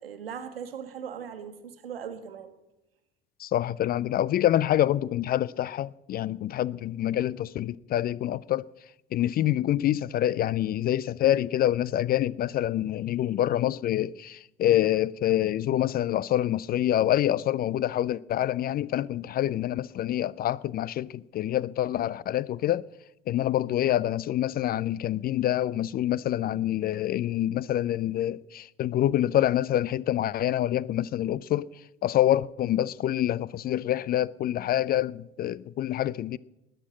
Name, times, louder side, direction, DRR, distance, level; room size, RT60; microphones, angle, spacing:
voice 1, 0.0-2.5, right 7 dB, 80° right, 1.4 m, -39 dB
voice 2, 3.4-8.6 9.1-22.9 23.3-31.7 32.0-36.4, left 12 dB, 35° left, 0.4 m, -26 dB
20.0 x 6.6 x 7.5 m
figure-of-eight pair, 60°, 29 cm